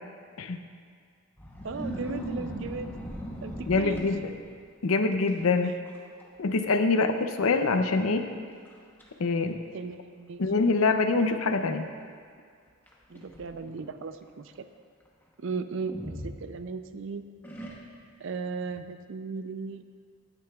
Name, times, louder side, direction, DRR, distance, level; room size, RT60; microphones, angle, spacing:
sound 1, 1.4-4.6 5.3-5.5 5.8-6.3 6.5-6.6 7.4-7.5 8.0-8.1 8.6-9.1 9.9-10.0 12.9-13.9 15.9-16.9 17.4-18.2, equal, 10° left, 0.9 m, -39 dB
voice 1, 1.6-3.0 3.4-4.1 5.6-5.7 9.7-10.4 13.1-14.7 15.4-17.2 18.2-19.8, right 4 dB, 60° right, 10 dB, 0.4 m, -36 dB
voice 2, 3.7-4.3 4.8-5.8 6.4-8.3 9.2-9.6 10.4-11.9, left 3 dB, 75° left, 8 dB, 0.6 m, -25 dB
14.5 x 9.8 x 2.3 m, 2.1 s
head